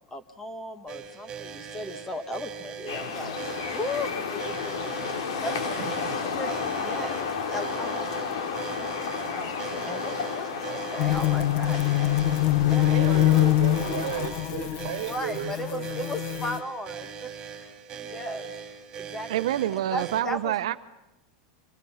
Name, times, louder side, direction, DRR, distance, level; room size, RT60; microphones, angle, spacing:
voice 1, 0.0-5.8 6.4-6.5 6.8-12.2 12.6-12.9 13.4-13.5 15.1-17.3 17.6-18.5 18.9-19.5 19.9-20.8, left 1 dB, 10° left, 1.5 m, -37 dB
sound 1, 0.9-20.2, right 6 dB, 25° right, 4.3 m, -40 dB
sound 2, 2.9-14.3, left 5 dB, 80° left, 3.1 m, -32 dB
voice 2, 5.8-6.4 12.8-15.8, right 13 dB, 65° right, 1.6 m, -35 dB
sound 3, 11.0-16.6, left 15 dB, 50° left, 1.1 m, -24 dB
voice 3, 19.3-20.8, right 12 dB, 80° right, 1.0 m, -27 dB
30.0 x 26.5 x 5.7 m
supercardioid pair, 155°, 3 cm